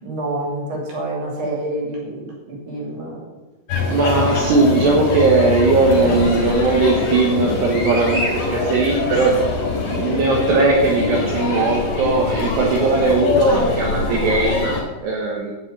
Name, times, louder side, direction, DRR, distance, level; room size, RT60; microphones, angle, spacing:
voice 1, 0.0-2.2 2.7-3.2, right 1 dB, 30° right, -2 dB, 3.6 m, -27 dB
sound 1, 3.7-14.8, left 3 dB, 55° left, 5.1 m, -23 dB
voice 2, 3.9-9.3 9.8-14.8 15.0-15.5, right 3 dB, 70° right, -1 dB, 3.2 m, -18 dB
12.5 x 6.1 x 8.5 m, 1.1 s
omnidirectional pair, 5.6 m